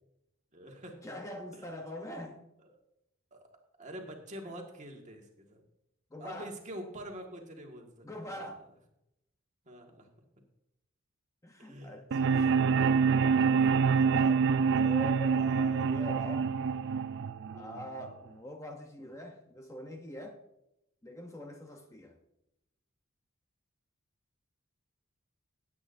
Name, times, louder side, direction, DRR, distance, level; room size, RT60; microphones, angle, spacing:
voice 1, 0.5-1.0 1.5-1.7 2.6-2.7 3.3-3.5 3.8-5.6 6.2-8.5 9.6-10.1 11.6-12.0 12.6-13.4 13.7-13.8 17.5-17.8, right 1 dB, 35° right, 2 dB, 1.7 m, -46 dB
voice 2, 1.0-2.4 4.4-4.6 6.1-6.5 8.0-8.6 11.4-12.6 13.0-13.1 13.9-16.5 17.5-20.4 21.0-22.2, left 1 dB, 15° left, 3 dB, 0.7 m, -44 dB
sound 1, 12.1-18.1, right 5 dB, 55° right, 0.3 m, -26 dB
17.0 x 8.5 x 2.6 m, 0.86 s
head